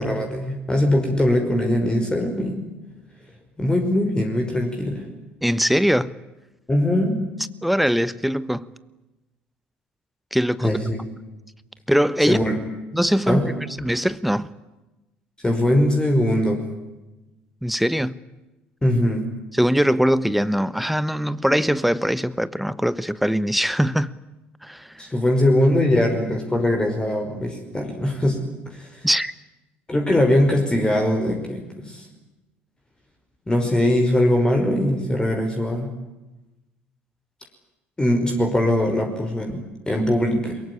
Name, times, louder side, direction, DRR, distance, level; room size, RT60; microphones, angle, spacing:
voice 1, 0.0-2.6 3.6-5.0 6.7-7.3 10.6-11.0 12.3-12.6 13.3-13.5 15.4-16.6 18.8-19.3 25.0-29.0 29.9-32.1 33.5-35.9 38.0-40.6, left 1 dB, 15° left, 5.5 m, -21 dB
voice 2, 5.4-6.1 7.6-8.7 10.3-10.8 11.9-12.4 12.9-13.5 13.8-14.5 17.6-18.2 19.5-24.2 24.6-24.9 29.0-29.3, equal, ahead, 1.2 m, -21 dB
23.0 x 22.5 x 10.0 m
figure-of-eight pair, 60°, 6 cm